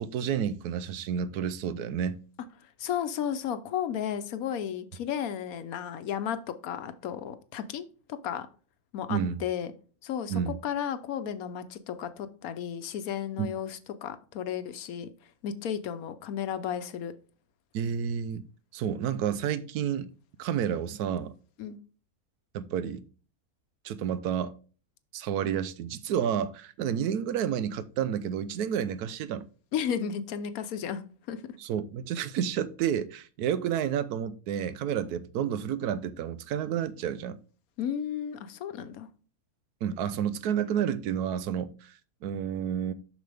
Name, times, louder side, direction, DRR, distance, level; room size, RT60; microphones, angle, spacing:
voice 1, 0.0-2.2 9.1-9.4 10.3-10.6 13.4-13.5 17.7-18.5 18.7-20.1 20.4-21.3 22.5-23.0 23.8-24.5 25.1-29.5 31.6-37.4 39.8-41.9 42.2-42.9, right 8 dB, 85° right, 1.2 m, -30 dB
voice 2, 2.8-8.5 8.9-9.7 10.0-15.1 15.4-17.1 21.6-21.8 29.7-31.4 37.8-39.1, left 9 dB, 75° left, 1.2 m, -33 dB
7.2 x 6.1 x 3.4 m
omnidirectional pair, 1.6 m